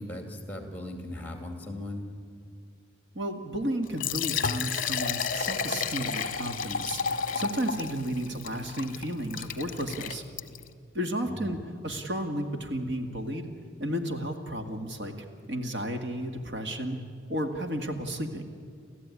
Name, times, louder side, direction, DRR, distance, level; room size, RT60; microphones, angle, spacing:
voice 1, 0.0-2.1 11.3-11.7, left 1 dB, 10° left, 5 dB, 2.4 m, -38 dB
voice 2, 3.2-7.0 7.4-10.2 10.9-11.6 11.8-13.5 13.8-15.1 15.5-17.0 17.3-18.4, right 1 dB, 60° right, 5 dB, 1.9 m, -32 dB
Liquid, 3.8-10.7, left 6 dB, 45° left, 1.0 m, -32 dB
30.0 x 14.0 x 9.7 m, 2.3 s
head